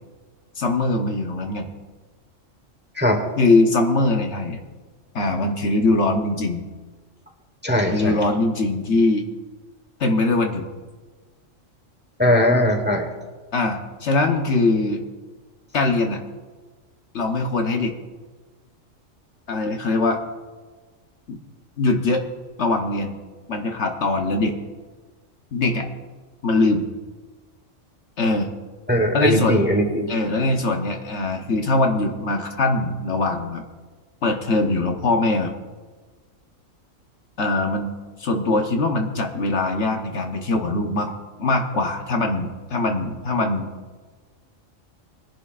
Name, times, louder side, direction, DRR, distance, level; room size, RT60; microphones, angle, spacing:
voice 1, 0.6-1.7 3.4-4.6 5.1-6.7 7.9-9.3 10.0-10.7 13.5-15.0 15.7-16.2 17.1-18.0 19.5-20.2 21.3-21.4 21.8-22.2 22.6-23.1 23.5-24.6 25.5-25.9 26.4-26.9 28.2-28.5 29.1-29.6 30.1-33.6 34.2-35.5 37.4-37.9 38.2-41.1 41.4-43.7, left 2 dB, 60° left, 3 dB, 1.3 m, -22 dB
voice 2, 7.6-8.2 12.2-13.1 28.9-30.1, equal, 10° right, 4 dB, 1.1 m, -19 dB
21.0 x 11.0 x 2.5 m, 1.3 s
omnidirectional pair, 1.3 m